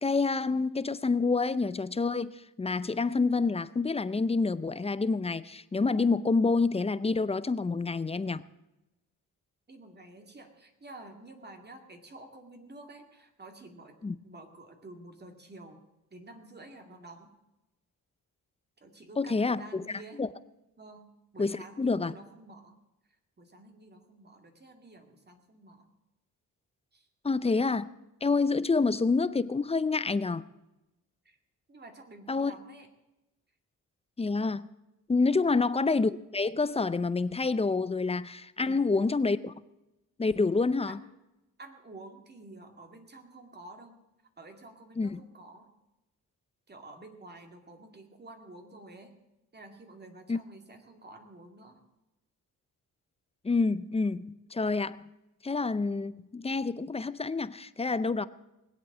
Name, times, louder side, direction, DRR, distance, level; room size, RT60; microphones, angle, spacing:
voice 1, 0.0-8.4 14.0-14.1 19.2-19.8 20.2-20.3 21.4-22.1 27.2-27.9 28.2-30.4 32.3-32.5 34.2-34.6 35.1-39.5 40.2-41.0 45.0-45.2 50.3-50.4 53.4-55.0 55.4-58.3, left 4 dB, 20° left, 0.6 m, -28 dB
voice 2, 9.7-14.0 14.2-15.8 16.1-17.3 18.8-20.2 20.8-22.8 23.4-25.9 26.9-27.1 31.2-31.4 31.7-32.9 35.3-35.6 38.6-39.2 40.9-41.1 41.6-44.0 44.4-45.7 46.7-49.2 49.5-51.8, right 2 dB, 30° right, 2.4 m, -50 dB
20.0 x 8.3 x 7.3 m
cardioid pair, 95°, 34 cm